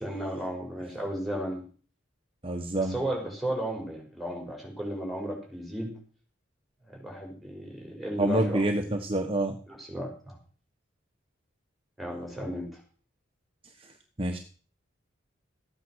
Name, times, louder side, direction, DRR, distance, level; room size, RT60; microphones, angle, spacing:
voice 1, 0.0-1.6 2.8-5.9 7.0-8.6 9.7-10.4 12.0-12.8, right 1 dB, ahead, 0 dB, 5.5 m, -34 dB
voice 2, 2.4-3.0 8.2-9.6 14.2-14.4, right 1 dB, 30° right, 5 dB, 1.2 m, -27 dB
14.5 x 9.2 x 6.4 m, 0.41 s
head